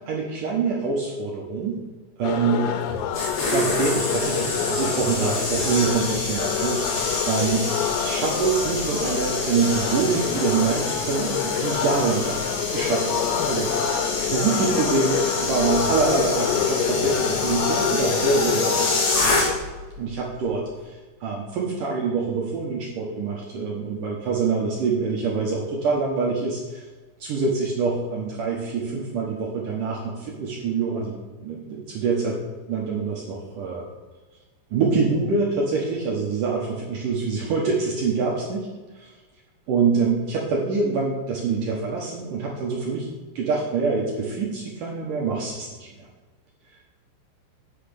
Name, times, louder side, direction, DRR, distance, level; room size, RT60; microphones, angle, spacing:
voice 1, 0.1-1.8 2.2-2.7 3.4-18.9 20.0-26.9 27.2-32.4 32.7-33.9 34.7-38.7 38.9-39.1 39.7-43.1 43.4-46.1, right 4 dB, 85° right, -2 dB, 1.8 m, -25 dB
sound 1, 2.2-19.6, left 8 dB, 90° left, 3.5 m, -27 dB
sound 2, 2.9-19.8 20.1-20.4, left 2 dB, 50° left, 4.0 m, -28 dB
sound 3, 8.4-10.0 15.6-18.6, right 1 dB, 70° left, 3.6 m, -41 dB
8.4 x 6.5 x 6.9 m, 1.3 s
omnidirectional pair, 5.8 m